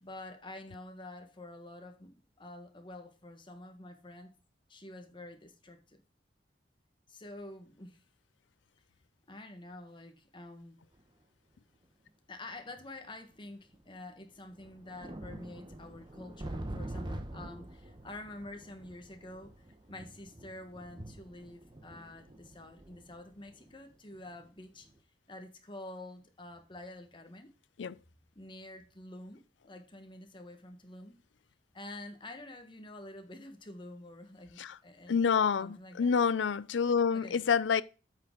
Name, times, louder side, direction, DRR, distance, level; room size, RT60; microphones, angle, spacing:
voice 1, 0.0-4.4 4.7-6.0 7.1-8.0 9.3-10.8 12.3-19.5 19.9-24.9 25.3-27.5 28.3-31.2 31.7-35.2 35.6-36.2 37.1-37.4, left 1 dB, 25° left, 1.4 m, -48 dB
sound 1, 10.9-11.0 12.1-12.2 13.3-13.4 13.7-13.8 14.4-24.4 24.8-25.0, right 1 dB, 25° right, 1.1 m, -45 dB
voice 2, 35.1-37.8, left 6 dB, 85° left, 0.5 m, -28 dB
8.5 x 6.4 x 3.8 m
head